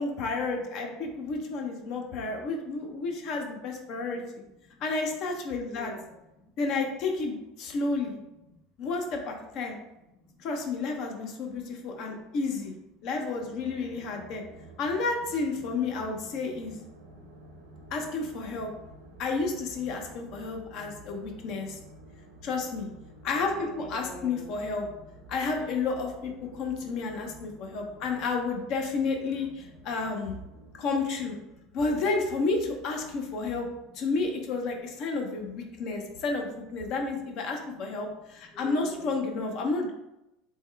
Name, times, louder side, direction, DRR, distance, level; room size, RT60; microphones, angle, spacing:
voice 1, 0.0-4.2 4.8-5.9 6.6-8.2 8.8-9.8 10.4-12.7 13.0-14.4 14.8-16.8 17.9-18.7 19.2-21.8 22.4-22.9 23.2-24.9 25.3-30.3 30.8-31.4 31.7-33.7 33.9-39.9, left 3 dB, 55° left, 2 dB, 0.6 m, -31 dB
voice 2, 1.9-2.9 3.9-4.2 4.6-4.8 5.7-6.5 8.5-8.6 10.1-10.5 11.7-12.3 13.0-13.1 14.4-14.7 16.5-16.6 16.9-17.9 19.1-19.2 20.5-22.5 23.5-24.6 25.2-25.3 26.7-28.3 29.8-30.8 31.5-31.6 33.7-34.1 35.4-36.2 37.5-38.2 38.4-39.3, left 2 dB, 15° left, 1 dB, 0.5 m, -51 dB
sound 1, 13.4-31.4, right 1 dB, 85° right, 0.8 m, -51 dB
3.5 x 2.2 x 3.2 m, 0.91 s
supercardioid pair, 110°, 0 cm